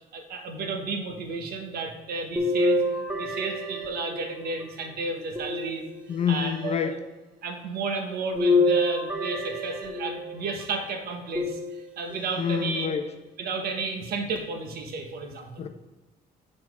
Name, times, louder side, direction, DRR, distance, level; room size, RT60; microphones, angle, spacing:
voice 1, 0.1-2.8 3.1-7.0 7.4-12.9 13.4-15.7, right 4 dB, 65° right, 4 dB, 1.2 m, -33 dB
sound 1, 2.4-4.6 5.4-6.4 8.4-10.4 11.4-12.2 12.9-13.0 14.4-14.5, left 1 dB, 10° right, 1.1 m, -27 dB
voice 2, 6.1-6.9 12.4-13.1 15.6-15.7, left 7 dB, 40° left, 7 dB, 0.5 m, -27 dB
7.2 x 4.3 x 4.8 m, 1.1 s
cardioid pair, 110°, 17 cm